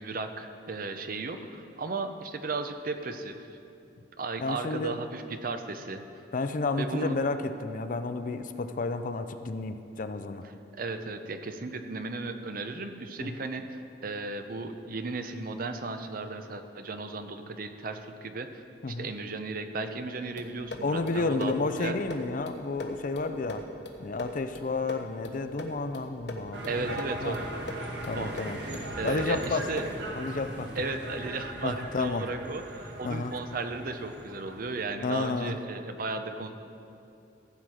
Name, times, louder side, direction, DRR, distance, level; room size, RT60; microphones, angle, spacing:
voice 1, 0.0-3.6 4.2-6.0 6.8-7.2 10.4-13.6 14.0-21.5 21.8-21.9 26.7-27.4 28.2-28.3 28.6-29.8 30.7-36.5, right 3 dB, 55° right, 8 dB, 0.7 m, -35 dB
voice 2, 4.4-5.0 6.3-10.5 13.2-13.4 18.8-19.1 20.8-23.6 24.0-26.6 26.9-27.0 27.2-27.4 28.0-28.6 29.0-29.7 30.2-30.7 31.6-32.3 33.0-33.3 35.0-35.5, left 3 dB, 50° left, 9 dB, 0.5 m, -31 dB
sound 1, 20.4-30.1, left 2 dB, 70° left, 1.1 m, -42 dB
sound 2, 26.5-34.8, right 1 dB, 75° right, 1.5 m, -39 dB
15.0 x 7.7 x 4.9 m, 2.7 s
head